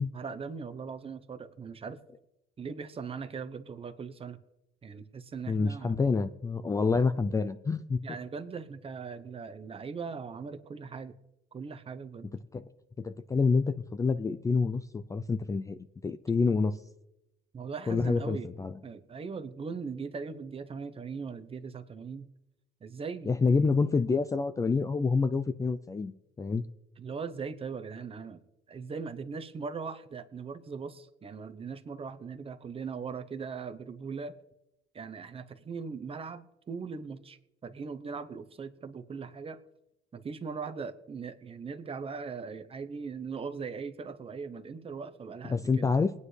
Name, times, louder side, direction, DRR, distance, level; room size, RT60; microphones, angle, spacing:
voice 1, 0.0-2.0 2.6-4.4 4.8-6.0 6.9-7.0 8.0-11.1 11.5-12.3 17.5-18.5 18.8-22.3 22.8-23.6 27.0-28.4 28.7-34.3 34.9-39.6 40.1-45.9, right 5 dB, 25° right, 10 dB, 0.8 m, -40 dB
voice 2, 5.5-8.0 12.5-12.6 13.0-16.8 17.9-18.7 23.3-26.7 45.5-46.1, left 4 dB, 15° left, 11 dB, 0.4 m, -27 dB
20.5 x 9.5 x 3.3 m, 0.88 s
cardioid pair, 130°, 21 cm